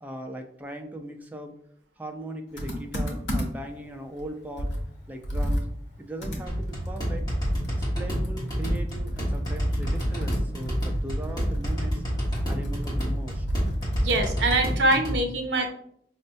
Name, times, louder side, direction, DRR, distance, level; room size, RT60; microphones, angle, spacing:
voice 1, 0.0-1.5 2.0-4.7 5.1-5.7 6.0-7.2 7.9-12.0 12.4-13.5, right 1 dB, 10° right, 3 dB, 0.3 m, -39 dB
Computer keyboard, 2.6-3.7 4.2-4.3 4.6-7.9 8.1-14.6, equal, 85° left, 0.9 m, -31 dB
sound 1, 6.5-15.2, equal, 25° left, 1.2 m, -29 dB
voice 2, 14.0-15.7, right 2 dB, 80° right, 5 dB, 0.6 m, -24 dB
5.2 x 2.1 x 2.6 m, 0.69 s
head